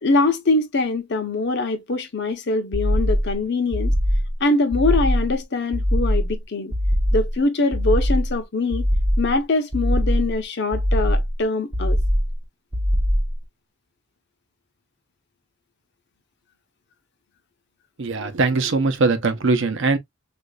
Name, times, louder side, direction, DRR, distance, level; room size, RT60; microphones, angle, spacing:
voice 1, 0.0-3.9 4.4-6.7 7.1-8.8 9.2-12.0, left 3 dB, 55° left, 0.7 m, -23 dB
sound 1, 2.7-3.4 3.7-4.4 4.7-5.3 5.7-6.4 6.7-7.3 7.7-8.4 8.7-9.3 9.7-10.4 10.7-11.4 11.7-12.4 12.7-13.4, equal, 20° right, 0.5 m, -21 dB
voice 2, 18.0-20.0, right 3 dB, 60° right, 0.7 m, -21 dB
3.9 x 2.5 x 2.3 m
head